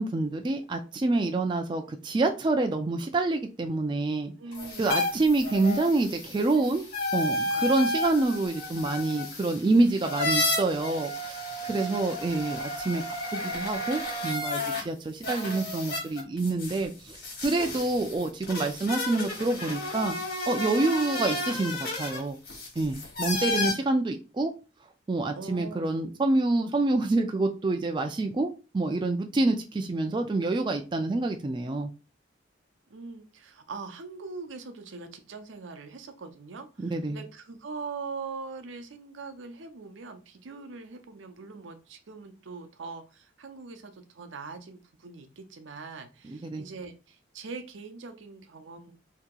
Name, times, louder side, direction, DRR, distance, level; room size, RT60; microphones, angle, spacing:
voice 1, 0.0-4.3 4.8-6.8 7.1-13.0 13.3-20.2 20.5-22.4 22.8-24.5 25.1-31.9 36.8-37.2 46.3-46.6, right 2 dB, 25° right, 5 dB, 0.3 m, -27 dB
voice 2, 4.4-5.0 11.7-12.3 25.3-26.0 32.9-48.9, right 4 dB, 80° right, 8 dB, 0.6 m, -42 dB
sound 1, 4.5-14.8 15.2-23.7, left 2 dB, 50° left, 1.3 m, -32 dB
2.8 x 2.8 x 3.7 m, 0.31 s
head